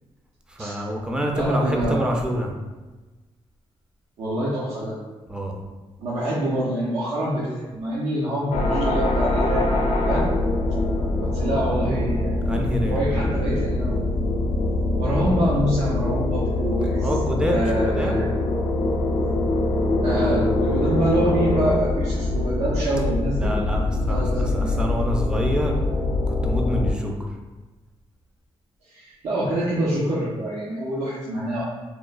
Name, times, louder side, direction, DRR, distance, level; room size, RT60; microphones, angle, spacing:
voice 1, 0.5-2.5 5.3-5.6 12.4-13.0 17.0-18.2 23.4-25.8 26.3-27.1, equal, 10° right, 1 dB, 0.4 m, -27 dB
voice 2, 1.3-2.1 4.2-5.0 6.0-9.7 10.1-10.3 11.3-12.3 12.8-13.9 15.0-17.1 17.5-18.3 20.0-23.5 24.0-24.7 28.9-31.6, right 1 dB, 85° right, -8 dB, 0.5 m, -26 dB
sound 1, 8.5-26.9, left 2 dB, 80° left, 0.4 m, -23 dB
2.9 x 2.1 x 2.3 m, 1.2 s
cardioid pair, 80°, 12 cm